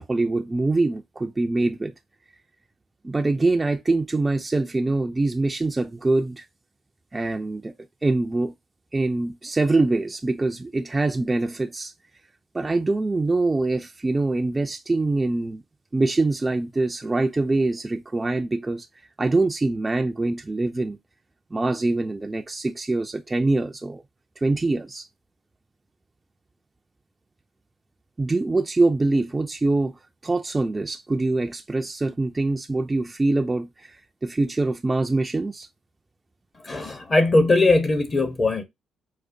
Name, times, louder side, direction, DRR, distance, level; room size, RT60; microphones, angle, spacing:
voice 1, 0.0-1.9 3.0-6.4 7.1-7.7 8.0-8.5 8.9-11.9 12.5-15.6 15.9-18.9 19.2-21.0 21.5-24.0 24.4-25.1 28.2-35.7, right 2 dB, 20° right, 0.3 m, -24 dB
voice 2, 36.6-38.6, left 2 dB, 35° left, 0.7 m, -20 dB
4.8 x 2.1 x 2.5 m
cardioid pair, 90°, 0 cm